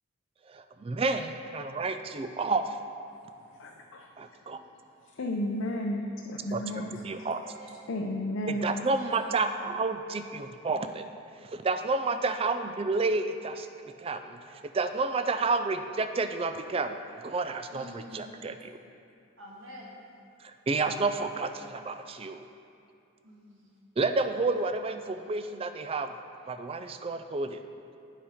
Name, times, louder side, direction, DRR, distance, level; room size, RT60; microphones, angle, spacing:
voice 1, 0.5-2.8 4.2-4.6 6.5-6.6 7.0-7.4 8.5-11.0 11.4-13.7 14.0-17.0 17.2-18.7 20.4-22.4 24.0-26.1 26.5-27.6, right 3 dB, 25° right, 9 dB, 0.3 m, -30 dB
voice 2, 3.6-4.1 4.5-4.6 5.2-7.3 7.9-8.9, left 1 dB, 65° left, 0 dB, 0.5 m, -33 dB
voice 3, 7.1-7.7 8.9-9.1 17.7-18.3 19.4-20.0 23.2-23.7, equal, 65° right, -4 dB, 1.6 m, -48 dB
8.6 x 5.0 x 5.6 m, 2.6 s
head